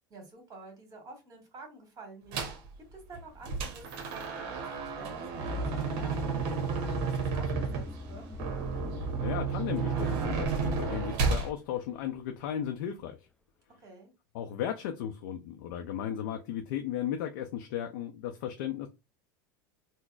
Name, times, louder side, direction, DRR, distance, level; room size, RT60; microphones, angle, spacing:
voice 1, 0.1-2.5 2.9-6.3 6.6-8.2 13.8-14.1, right 3 dB, 30° right, 1.7 m, -50 dB
sound 1, 2.3-2.7 3.1-11.5, right 5 dB, 55° right, 0.8 m, -32 dB
sound 2, 3.6-12.5, left 2 dB, 10° left, 0.5 m, -43 dB
voice 2, 9.2-13.2 14.3-18.9, left 10 dB, 65° left, 0.5 m, -35 dB
3.8 x 2.0 x 2.4 m
hypercardioid pair, 85°, 11 cm